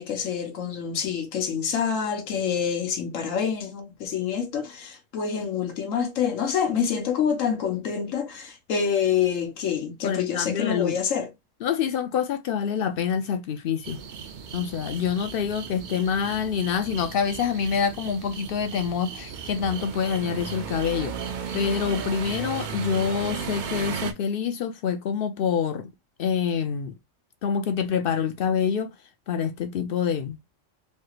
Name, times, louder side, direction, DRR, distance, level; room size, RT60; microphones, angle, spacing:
voice 1, 0.0-11.3, left 7 dB, 85° left, 1.1 m, -27 dB
voice 2, 10.0-11.0 11.6-14.0 14.5-21.1 21.5-25.9 26.2-26.9 27.4-28.9 29.3-30.4, left 7 dB, 60° left, 0.6 m, -26 dB
sound 1, 13.8-24.1, right 7 dB, 60° right, 0.5 m, -35 dB
3.2 x 2.4 x 2.8 m
omnidirectional pair, 1.3 m